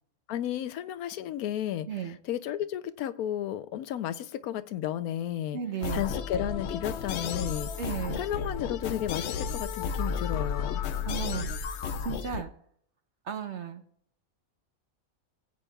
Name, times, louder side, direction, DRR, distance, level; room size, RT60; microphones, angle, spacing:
voice 1, 0.3-5.6 5.9-7.7 8.1-10.8, left 11 dB, 85° left, 1.1 m, -33 dB
voice 2, 1.9-2.2 5.5-6.0 7.8-8.2 11.1-11.5 12.0-12.5 13.3-13.8, right 8 dB, 55° right, 1.0 m, -34 dB
sound 1, 5.8-12.4, left 6 dB, 65° left, 0.8 m, -32 dB
21.0 x 8.4 x 2.3 m
omnidirectional pair, 1.5 m